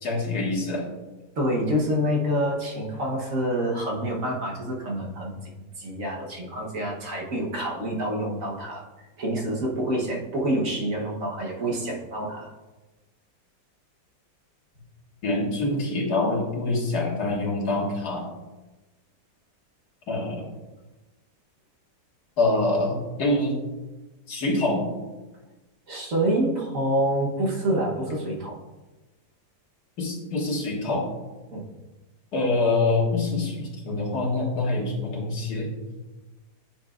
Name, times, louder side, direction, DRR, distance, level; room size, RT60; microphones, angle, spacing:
voice 1, 0.0-0.8 15.2-18.3 20.1-20.4 22.4-23.6 24.3-24.8 30.0-31.0 32.3-35.7, left 2 dB, 65° left, -3 dB, 2.1 m, -25 dB
voice 2, 1.4-5.5 5.8-8.8 9.2-12.5 25.9-28.5 31.5-31.6, right 1 dB, 55° right, -2 dB, 1.4 m, -27 dB
10.0 x 5.9 x 2.4 m, 1.1 s
omnidirectional pair, 1.9 m